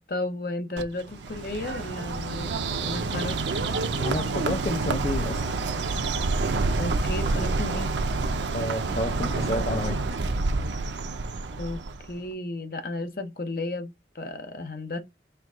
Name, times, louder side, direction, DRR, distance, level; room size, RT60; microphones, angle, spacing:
voice 1, 0.0-3.4 6.8-7.9 11.6-11.8 12.1-15.0, left 2 dB, 55° left, 0.7 m, -33 dB
Bird, 0.8-12.2, right 3 dB, 90° right, 0.6 m, -28 dB
voice 2, 4.0-5.4 8.5-10.0, left 2 dB, 35° left, 0.4 m, -30 dB
4.5 x 2.3 x 3.6 m
head